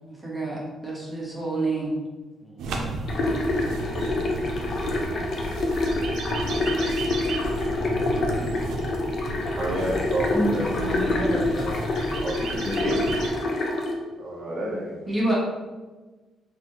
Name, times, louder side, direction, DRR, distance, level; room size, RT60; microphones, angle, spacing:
voice 1, 0.0-1.9 10.3-11.3 15.1-15.3, right 2 dB, 15° right, -5 dB, 1.1 m, -28 dB
voice 2, 2.4-2.9 9.3-9.5 10.9-12.1, left 1 dB, 10° left, -1 dB, 0.6 m, -35 dB
sound 1, 2.6-13.3, right 2 dB, 80° right, 0.5 m, -33 dB
sound 2, 3.1-13.9, left 2 dB, 55° left, 0.6 m, -27 dB
voice 3, 7.6-8.7 9.5-10.7 12.2-13.0 14.2-15.0, right 1 dB, 30° right, -4 dB, 1.4 m, -31 dB
3.9 x 2.7 x 3.1 m, 1.2 s
cardioid pair, 90°, 0 cm